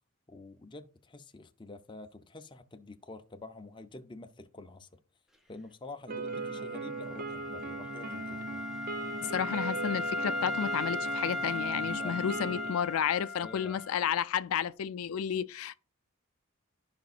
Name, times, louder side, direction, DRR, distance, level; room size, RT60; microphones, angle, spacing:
voice 1, 0.3-5.0 5.5-8.7 11.8-12.2 13.4-13.8, left 2 dB, 25° left, 0.6 m, -48 dB
sound 1, 6.1-12.7, right 3 dB, 40° right, 0.4 m, -39 dB
Wind instrument woodwind instrument, 6.3-14.0, left 2 dB, ahead, 0.9 m, -37 dB
voice 2, 9.2-15.8, left 8 dB, 85° left, 0.4 m, -32 dB
14.0 x 5.2 x 2.4 m
head